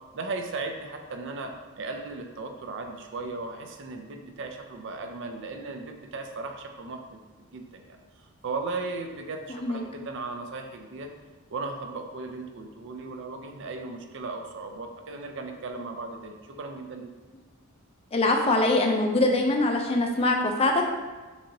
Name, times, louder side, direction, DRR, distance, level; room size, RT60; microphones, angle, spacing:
voice 1, 0.1-7.0 7.5-8.0 8.4-11.1 11.5-17.1, right 3 dB, 55° right, 4 dB, 0.4 m, -36 dB
voice 2, 18.1-20.9, left 2 dB, 25° left, 3 dB, 0.4 m, -23 dB
6.0 x 2.8 x 2.7 m, 1.3 s
head